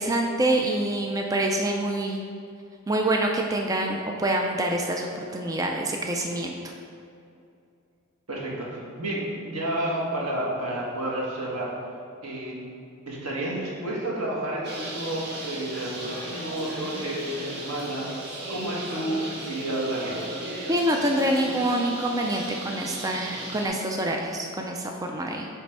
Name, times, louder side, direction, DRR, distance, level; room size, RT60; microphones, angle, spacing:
voice 1, 0.0-2.2 2.9-6.7 20.7-25.5, right 1 dB, 15° right, 1 dB, 0.3 m, -26 dB
voice 2, 8.3-11.7 12.2-12.6 13.1-20.2, right 1 dB, 90° right, -4 dB, 1.5 m, -31 dB
Bird, 14.6-23.7, right 1 dB, 50° right, 1.4 m, -36 dB
8.3 x 3.4 x 4.5 m, 2.5 s
head